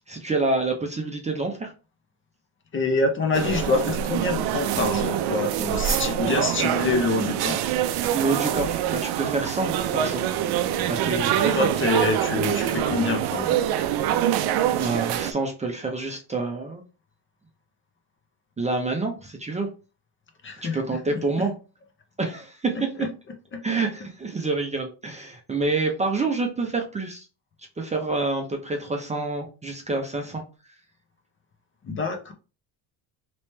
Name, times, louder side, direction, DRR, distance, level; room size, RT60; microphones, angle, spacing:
voice 1, 0.1-1.7 8.1-10.3 10.9-11.7 14.7-16.8 18.6-19.7 20.7-21.5 22.2-22.9 23.6-27.3 27.8-30.4, right 3 dB, 15° right, 0.6 m, -27 dB
voice 2, 2.7-7.7 11.5-13.6 20.4-20.8 21.1-21.5 23.0-23.1 23.5-23.6 31.8-32.3, left 3 dB, 30° left, 0.6 m, -26 dB
sound 1, 3.3-15.3, right 10 dB, 60° right, 0.5 m, -25 dB
3.0 x 3.0 x 3.2 m
cardioid pair, 115°, 44 cm